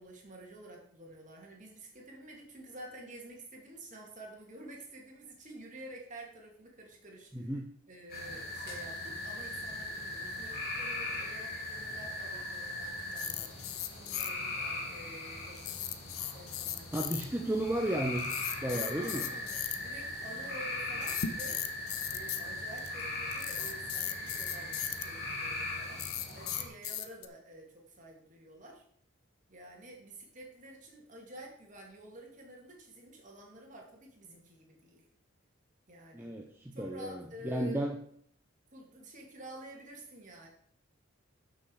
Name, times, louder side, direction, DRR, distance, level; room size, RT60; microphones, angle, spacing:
voice 1, 0.0-7.5 7.9-15.8 16.3-17.2 18.7-21.6 22.1-28.8 29.5-35.0 35.9-36.3 36.7-37.9 38.7-40.5, right 1 dB, 35° right, 0 dB, 2.6 m, -50 dB
voice 2, 7.3-7.7 16.9-19.3 36.1-38.0, right 1 dB, 10° right, 1 dB, 0.7 m, -34 dB
sound 1, 8.1-26.7, left 2 dB, 45° left, 3.3 m, -39 dB
sound 2, 13.1-14.3 15.6-17.2 18.2-19.8 21.0-22.4 22.8-22.9 23.3-25.0 26.0-27.3, left 11 dB, 90° left, 0.9 m, -37 dB
12.0 x 6.3 x 4.8 m, 0.63 s
head